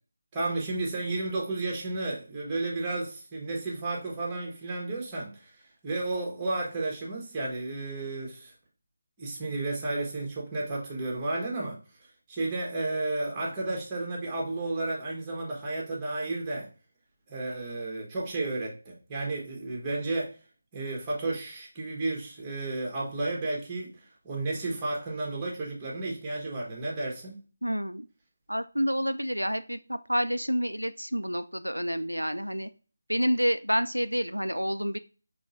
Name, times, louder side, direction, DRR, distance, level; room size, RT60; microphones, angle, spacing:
voice 1, 0.3-5.5 5.8-8.5 9.2-11.8 12.3-16.7 17.3-20.3 20.7-23.9 24.2-27.4, right 2 dB, 15° right, 1.1 m, -32 dB
voice 2, 27.6-28.1 28.5-32.7 33.1-35.0, equal, 90° right, 0.3 m, -28 dB
5.1 x 3.1 x 2.6 m
figure-of-eight pair, 160°, 0 cm